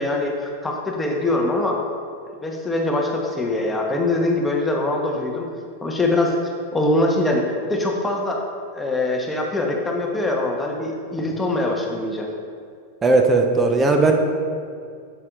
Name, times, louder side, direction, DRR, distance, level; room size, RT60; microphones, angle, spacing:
voice 1, 0.0-1.8 2.4-5.5 5.8-6.3 6.7-8.4 8.7-12.3, left 2 dB, 10° left, 0 dB, 1.0 m, -23 dB
voice 2, 13.0-14.1, right 3 dB, 15° right, 3 dB, 0.8 m, -17 dB
8.0 x 7.2 x 2.4 m, 2.2 s
figure-of-eight pair, 90°, 0 cm